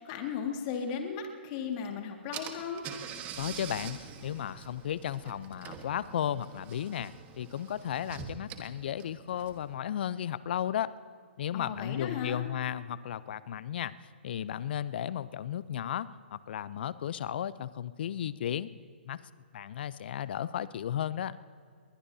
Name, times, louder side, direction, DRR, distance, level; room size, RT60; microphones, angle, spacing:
voice 1, 0.0-2.9 11.5-12.4, left 7 dB, 35° left, 3 dB, 2.0 m, -36 dB
Car / Engine, 1.8-1.9 2.3-9.8, right 8 dB, 25° right, 1.3 m, -45 dB
voice 2, 3.4-10.9 11.4-13.9 14.2-18.7 19.0-19.2 19.5-21.4, left 10 dB, 55° left, 17 dB, 0.6 m, -34 dB
21.0 x 20.5 x 2.8 m, 2.2 s
hypercardioid pair, 130°, 6 cm